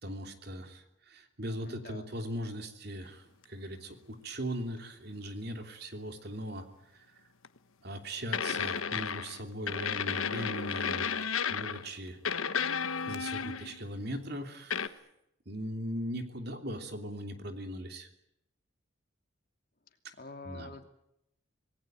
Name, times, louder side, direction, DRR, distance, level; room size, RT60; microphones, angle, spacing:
voice 1, 0.0-6.7 6.9-7.1 7.8-11.1 11.5-12.2 12.6-12.8 13.1-15.0 15.4-18.1 20.4-20.7, equal, 50° right, 6 dB, 3.1 m, -39 dB
voice 2, 1.6-2.1 9.9-10.0 19.9-20.8, left 3 dB, 45° left, 6 dB, 2.8 m, -48 dB
sound 1, 7.4-7.6 8.3-9.4 9.7-11.9 12.2-13.8 14.7-14.9, left 6 dB, 90° left, 1.3 m, -33 dB
26.5 x 19.0 x 9.1 m, 0.80 s
head